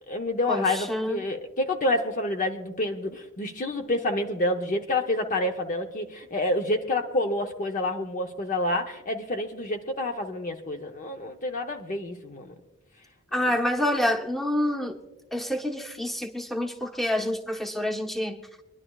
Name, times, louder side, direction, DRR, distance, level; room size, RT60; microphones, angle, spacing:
voice 1, 0.1-12.5 13.4-13.5, left 1 dB, 40° left, 5 dB, 0.7 m, -28 dB
voice 2, 0.9-1.2 13.3-15.0 15.3-18.4, left 1 dB, ahead, 1 dB, 1.0 m, -27 dB
26.5 x 11.0 x 2.3 m, 0.96 s
head